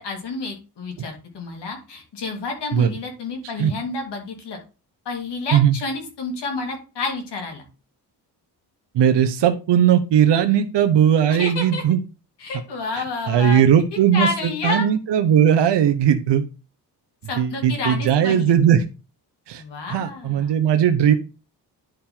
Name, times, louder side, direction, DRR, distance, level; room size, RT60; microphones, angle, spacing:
voice 1, 0.0-4.6 5.0-7.6 11.3-11.8 12.4-13.7 14.1-14.9 17.3-18.5 19.5-20.6, left 3 dB, 75° left, 2 dB, 3.0 m, -29 dB
voice 2, 8.9-12.0 13.0-16.4 17.4-18.8 19.5-19.6 19.9-21.1, right 9 dB, 75° right, 8 dB, 0.9 m, -18 dB
10.5 x 4.4 x 3.7 m, 0.30 s
cardioid pair, 110°, 41 cm